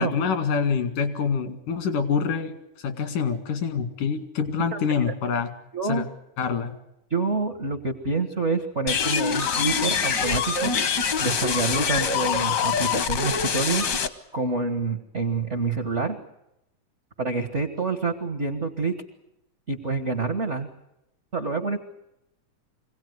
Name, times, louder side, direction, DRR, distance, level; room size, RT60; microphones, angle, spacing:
voice 1, 0.0-2.6 2.8-5.5 5.9-6.0 6.4-6.7, left 6 dB, 85° left, 8 dB, 3.6 m, -26 dB
voice 2, 5.7-6.1 7.1-10.7 11.2-13.9 14.3-16.2 17.2-18.9 19.7-20.7 21.3-21.8, right 3 dB, 75° right, 7 dB, 0.6 m, -27 dB
sound 1, 8.9-14.1, left 6 dB, 65° left, 1.0 m, -24 dB
24.5 x 17.5 x 9.5 m, 0.86 s
omnidirectional pair, 3.6 m